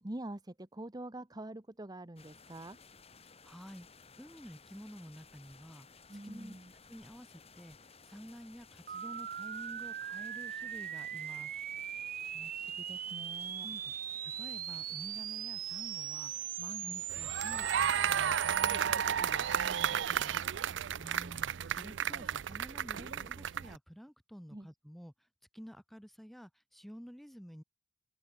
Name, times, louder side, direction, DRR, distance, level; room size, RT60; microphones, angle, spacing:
voice 1, 0.0-2.8 6.1-6.7 12.3-13.7 16.8-17.0 21.0-21.5 24.5-24.7, right 1 dB, 20° right, 1.0 m, -46 dB
sound 1, 2.2-19.8, left 5 dB, 30° left, 2.8 m, -58 dB
voice 2, 3.2-3.9 4.2-5.9 6.2-6.6 6.9-11.5 13.6-14.0 14.2-20.4 21.7-25.1 25.5-27.6, equal, ahead, 3.5 m, -51 dB
sound 2, 8.9-18.8, right 10 dB, 45° right, 2.1 m, -40 dB
sound 3, 17.1-23.8, right 8 dB, 65° right, 0.5 m, -33 dB
open air
head